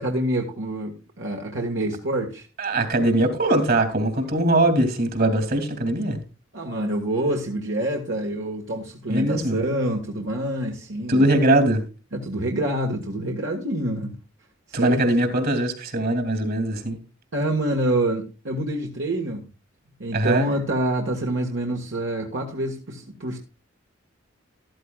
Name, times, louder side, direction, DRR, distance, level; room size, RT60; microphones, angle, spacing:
voice 1, 0.0-2.5 6.5-11.4 12.1-14.2 14.7-15.0 17.3-19.4 20.0-23.4, right 1 dB, 70° right, 1.7 m, -26 dB
voice 2, 2.6-6.2 9.1-9.6 11.1-11.8 14.7-17.0 20.1-20.4, right 1 dB, 55° right, 2.6 m, -21 dB
14.0 x 13.0 x 2.4 m
head